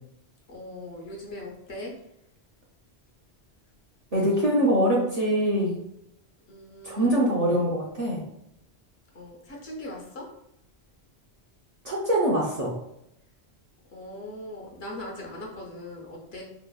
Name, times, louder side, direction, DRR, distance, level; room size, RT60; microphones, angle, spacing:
voice 1, 0.5-1.9 6.5-7.1 9.1-10.3 13.9-16.4, left 1 dB, 70° left, -2 dB, 1.0 m, -40 dB
voice 2, 4.1-5.8 6.8-8.2 11.8-12.7, right 1 dB, 50° right, -4 dB, 0.5 m, -23 dB
2.9 x 2.0 x 2.3 m, 0.79 s
omnidirectional pair, 1.1 m